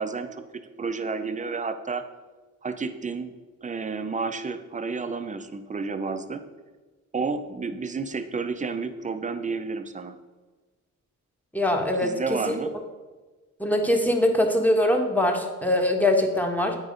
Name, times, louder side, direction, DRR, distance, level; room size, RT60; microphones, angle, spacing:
voice 1, 0.0-2.0 2.6-3.3 3.6-6.4 7.1-10.2 12.0-12.7, right 4 dB, 25° right, 9 dB, 0.7 m, -31 dB
voice 2, 11.5-12.6 13.6-16.8, left 1 dB, 5° left, 2 dB, 1.2 m, -23 dB
8.7 x 4.8 x 5.2 m, 1.3 s
cardioid pair, 85°, 32 cm